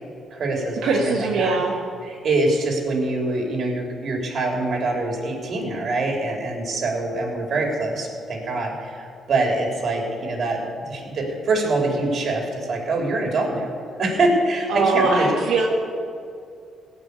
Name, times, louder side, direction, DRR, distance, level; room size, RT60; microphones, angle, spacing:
voice 1, 0.3-1.6 2.0-13.7 14.0-15.3, right 2 dB, 55° right, 0 dB, 3.5 m, -24 dB
voice 2, 0.8-1.7 14.7-15.6, right 3 dB, 80° right, -4 dB, 1.7 m, -21 dB
17.5 x 6.0 x 8.4 m, 2.4 s
cardioid pair, 90°, 0 cm